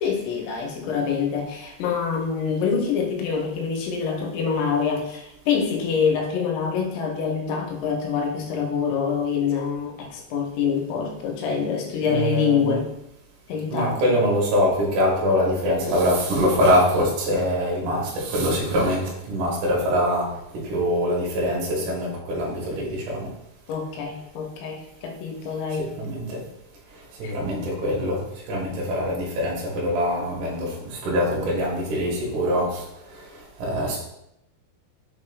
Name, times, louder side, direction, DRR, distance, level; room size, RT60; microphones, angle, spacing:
voice 1, 0.0-12.9 13.5-14.1 23.7-26.0 27.2-27.3, left 6 dB, 85° left, 1 dB, 2.9 m, -26 dB
voice 2, 12.1-12.8 13.7-20.3 20.6-23.3 25.8-26.4 27.2-32.8 33.1-34.0, equal, 80° right, -4 dB, 1.7 m, -24 dB
6.2 x 3.1 x 2.3 m, 0.82 s
omnidirectional pair, 5.1 m